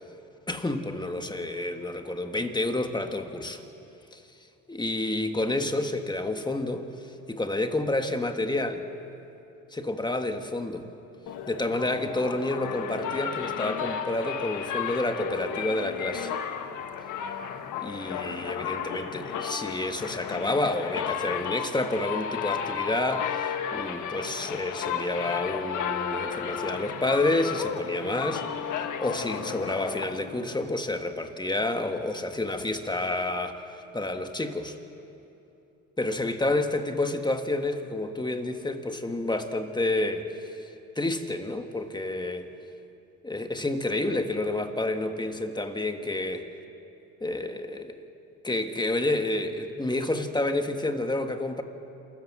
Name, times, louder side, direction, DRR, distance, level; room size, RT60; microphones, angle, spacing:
voice 1, 0.5-3.6 4.1-4.2 4.7-8.9 9.7-10.9 11.5-16.3 17.8-28.4 28.7-34.8 36.0-42.5 43.2-46.5 47.2-48.0 48.4-51.6, left 2 dB, 15° left, 7 dB, 1.5 m, -29 dB
sound 1, 11.3-30.6, left 7 dB, 80° left, 1.4 m, -33 dB
27.5 x 14.0 x 7.4 m, 2.8 s
cardioid pair, 90°, 30 cm